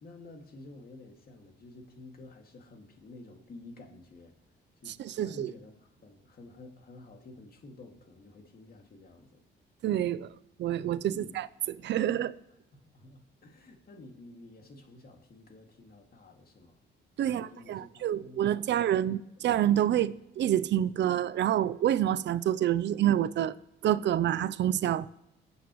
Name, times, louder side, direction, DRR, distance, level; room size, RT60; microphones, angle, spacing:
voice 1, 0.0-4.4 4.8-9.4 11.1-11.4 12.7-16.8 17.2-19.1, left 2 dB, 50° left, 2.3 m, -51 dB
voice 2, 5.0-5.5 9.8-10.3 10.6-12.3 17.2-23.5 23.8-25.1, right 11 dB, 65° right, 0.6 m, -27 dB
22.5 x 8.0 x 3.1 m
cardioid pair, 90°, 20 cm